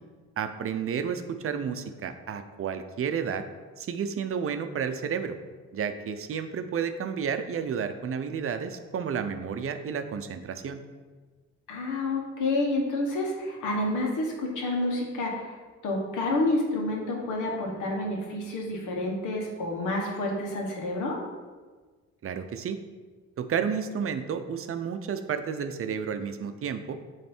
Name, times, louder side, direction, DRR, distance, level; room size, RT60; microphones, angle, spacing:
voice 1, 0.4-3.4 3.8-5.4 5.7-10.8 22.2-22.8 23.4-27.0, right 7 dB, 45° right, 9 dB, 0.6 m, -31 dB
voice 2, 11.7-15.6 15.8-21.2, left 2 dB, 80° left, -1 dB, 1.5 m, -29 dB
8.8 x 3.3 x 4.5 m, 1.4 s
cardioid pair, 90°, 30 cm